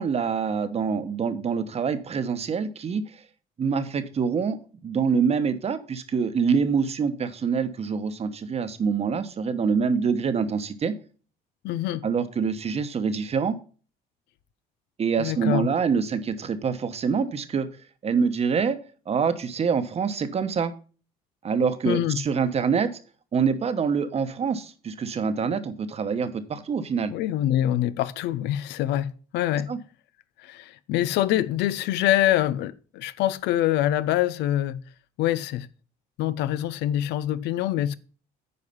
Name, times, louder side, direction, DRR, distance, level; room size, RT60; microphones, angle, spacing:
voice 1, 0.0-3.0 3.6-4.6 4.8-10.9 12.0-13.6 15.0-17.7 18.0-18.8 19.1-20.7 21.4-22.9 23.3-27.1 29.7-29.8, right 6 dB, 40° right, 1.0 m, -25 dB
voice 2, 11.6-12.1 15.2-15.7 21.9-22.2 27.1-29.8 30.4-34.8 35.2-35.7 36.2-37.9, left 13 dB, 85° left, 0.6 m, -25 dB
9.5 x 4.9 x 5.4 m
cardioid pair, 110°, 17 cm